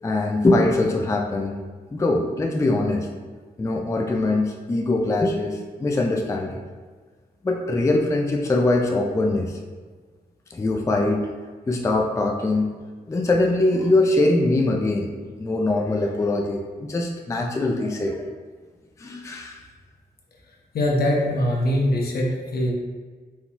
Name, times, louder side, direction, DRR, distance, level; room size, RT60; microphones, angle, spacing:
voice 1, 0.0-1.5 1.9-3.1 3.6-6.6 7.4-9.6 10.5-11.3 11.7-12.7 13.1-18.3 19.0-19.6, left 2 dB, 20° left, 1 dB, 0.4 m, -22 dB
voice 2, 20.7-22.7, left 1 dB, 70° left, -1 dB, 0.9 m, -22 dB
4.4 x 3.7 x 2.7 m, 1.5 s
cardioid pair, 95°, 16 cm